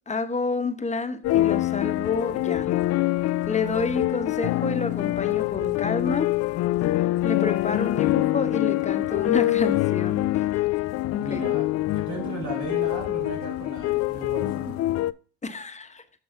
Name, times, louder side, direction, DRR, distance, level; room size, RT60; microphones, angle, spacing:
voice 1, 0.1-2.7 3.5-6.3 6.9-10.7 11.1-11.4 15.4-16.0, left 3 dB, 20° left, 1.1 m, -29 dB
sound 1, 1.2-15.1, left 16 dB, 50° left, 0.4 m, -25 dB
voice 2, 11.2-11.7 11.9-14.8, right 2 dB, 60° right, 4.4 m, -35 dB
7.0 x 6.2 x 3.7 m
hypercardioid pair, 60°, 33 cm